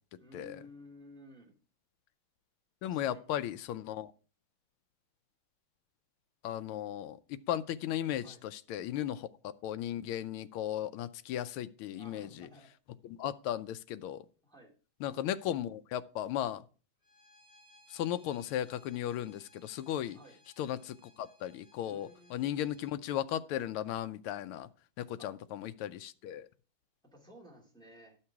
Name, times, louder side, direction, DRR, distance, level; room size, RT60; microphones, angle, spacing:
voice 1, 0.2-1.5 2.8-3.3 8.2-8.4 11.9-12.7 14.4-14.7 20.1-20.4 21.9-22.7 25.2-25.4 27.0-28.2, equal, ahead, 2.2 m, -55 dB
voice 2, 2.8-4.1 6.4-9.3 9.6-12.5 13.0-14.2 15.0-16.6 17.9-20.2 20.6-24.7 25.0-26.5, left 11 dB, 90° left, 1.5 m, -36 dB
Bowed string instrument, 17.0-22.9, left 1 dB, 20° right, 5.8 m, -64 dB
12.0 x 5.8 x 4.7 m
omnidirectional pair, 2.3 m